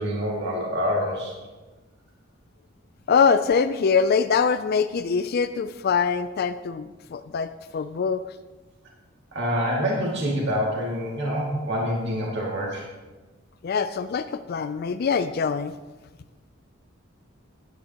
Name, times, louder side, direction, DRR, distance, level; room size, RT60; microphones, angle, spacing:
voice 1, 0.0-1.3 9.3-12.9, equal, 60° right, -3 dB, 2.2 m, -26 dB
voice 2, 3.1-8.2 13.6-15.7, left 5 dB, 50° left, 11 dB, 0.4 m, -23 dB
15.5 x 10.0 x 2.9 m, 1.2 s
head